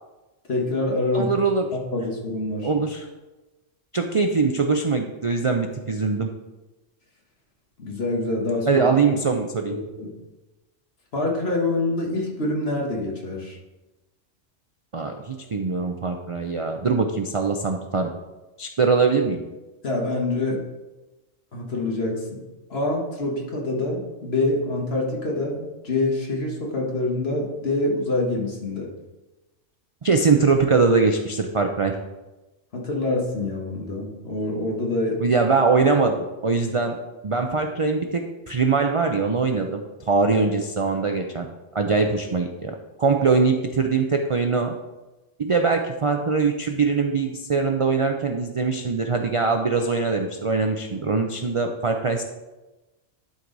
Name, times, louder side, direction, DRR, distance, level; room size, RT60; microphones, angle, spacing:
voice 1, 0.5-1.3 1.7-2.7 7.8-9.2 10.0-10.1 11.1-13.6 19.8-20.6 21.5-22.4 22.7-28.9 32.7-35.2, left 2 dB, 55° left, -1 dB, 1.7 m, -26 dB
voice 2, 1.1-1.7 2.6-3.1 3.9-6.3 8.7-9.8 14.9-18.1 18.6-19.4 30.0-31.9 35.2-37.0 37.2-41.5 41.7-44.7 45.4-52.2, right 4 dB, 55° right, 4 dB, 0.3 m, -22 dB
11.5 x 4.7 x 3.9 m, 1.1 s
omnidirectional pair, 1.3 m